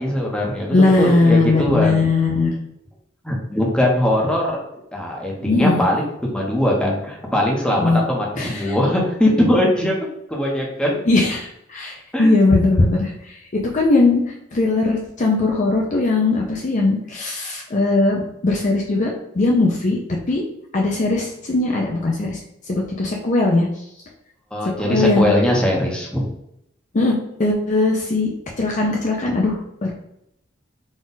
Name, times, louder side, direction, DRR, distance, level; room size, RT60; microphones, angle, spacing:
voice 1, 0.0-2.0 3.2-4.6 4.9-9.9 10.3-11.0 12.1-12.3 24.5-26.2, left 1 dB, 5° left, -2 dB, 0.9 m, -20 dB
voice 2, 0.7-2.5 5.4-5.8 7.8-8.0 8.4-8.7 11.1-14.2 14.5-20.0 20.3-20.4 20.7-22.4 22.7-23.7 24.8-25.3 26.9-27.1 27.4-28.3 28.6-29.9, left 2 dB, 40° left, 0 dB, 0.5 m, -19 dB
4.1 x 2.4 x 3.9 m, 0.77 s
head